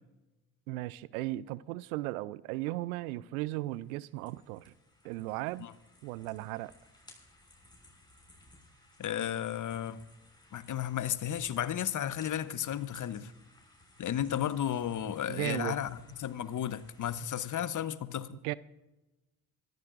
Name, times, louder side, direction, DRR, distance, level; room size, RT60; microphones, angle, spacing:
voice 1, 0.7-4.7 5.0-5.7 6.0-6.7 15.3-15.8 18.4-18.5, right 17 dB, 80° right, 0.5 m, -36 dB
sound 1, 3.6-17.5, left 1 dB, 10° left, 6.1 m, -60 dB
voice 2, 9.0-10.0 10.5-13.3 14.0-18.4, left 10 dB, 45° left, 0.9 m, -33 dB
24.5 x 14.5 x 2.5 m
hypercardioid pair, 50°, 42 cm